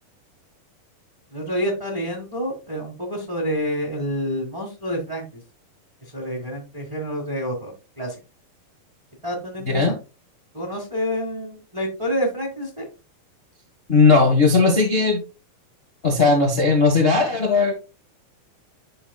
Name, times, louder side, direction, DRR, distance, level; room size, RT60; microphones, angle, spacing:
voice 1, 1.3-5.4 6.0-8.2 9.2-10.0 10.5-12.9, equal, 15° right, -2 dB, 1.0 m, -28 dB
voice 2, 13.9-15.2 16.0-17.7, left 4 dB, 50° left, 0 dB, 0.7 m, -17 dB
12.0 x 4.4 x 2.4 m, 0.29 s
omnidirectional pair, 4.0 m